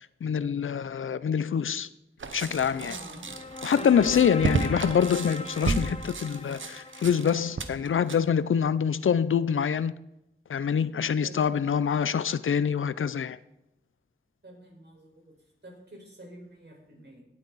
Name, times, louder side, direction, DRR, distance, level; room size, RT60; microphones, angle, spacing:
voice 1, 0.0-1.9 2.3-2.9 3.6-10.0 10.5-13.4, left 7 dB, 85° left, 0.5 m, -25 dB
sound 1, 2.2-8.2, right 3 dB, 75° right, 1.0 m, -33 dB
sound 2, 2.5-8.5, left 2 dB, 30° left, 0.9 m, -41 dB
voice 2, 2.8-3.3 3.6-4.1 11.2-12.2 14.4-17.2, equal, 60° right, 5.0 m, -48 dB
17.5 x 8.3 x 4.1 m
cardioid pair, 45°, 20 cm